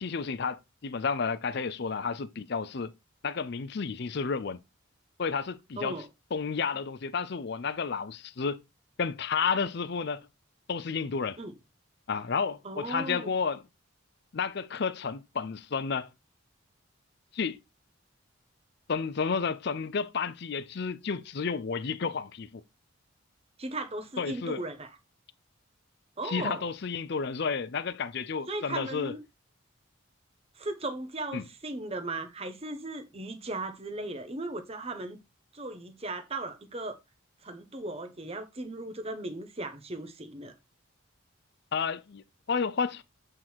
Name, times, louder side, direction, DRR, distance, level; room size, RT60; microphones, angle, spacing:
voice 1, 0.0-2.9 3.2-4.6 5.2-6.0 6.3-8.6 9.0-10.3 10.7-11.4 12.1-13.7 14.3-16.1 17.3-17.6 18.9-22.6 24.2-24.6 26.2-29.1 31.3-31.5 41.7-43.0, left 5 dB, 50° left, 0.5 m, -31 dB
voice 2, 5.8-6.1 11.4-11.5 12.6-13.3 23.6-24.9 26.2-26.7 28.5-29.2 30.6-35.2 35.5-37.0 37.4-40.5, right 2 dB, 30° right, 1.0 m, -37 dB
8.0 x 3.8 x 4.4 m
head